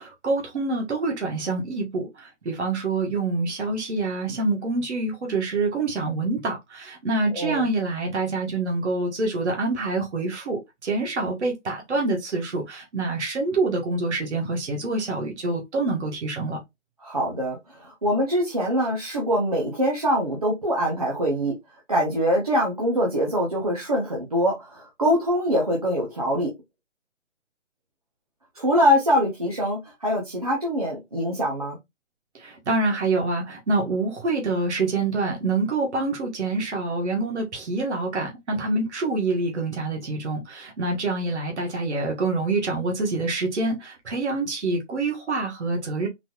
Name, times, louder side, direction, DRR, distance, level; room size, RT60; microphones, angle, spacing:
voice 1, 0.0-16.6 32.3-46.1, right 3 dB, 65° right, 1.4 m, -26 dB
voice 2, 7.3-7.7 17.0-21.5 21.9-26.5 28.5-31.8, equal, 30° right, 0.7 m, -24 dB
4.0 x 3.1 x 2.3 m
hypercardioid pair, 175°, 37 cm